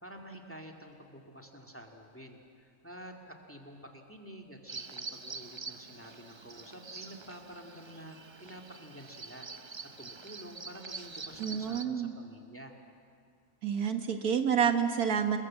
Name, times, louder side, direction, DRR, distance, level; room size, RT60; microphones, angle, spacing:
voice 1, 0.0-9.5 10.0-12.7, equal, 10° left, 2 dB, 2.2 m, -49 dB
Bird vocalization bird call bird song, 4.7-11.9, right 4 dB, 40° right, 0.4 m, -45 dB
voice 2, 11.4-12.1 13.6-15.4, right 7 dB, 75° right, 7 dB, 1.8 m, -28 dB
28.5 x 21.5 x 7.5 m, 2.2 s
omnidirectional pair, 1.6 m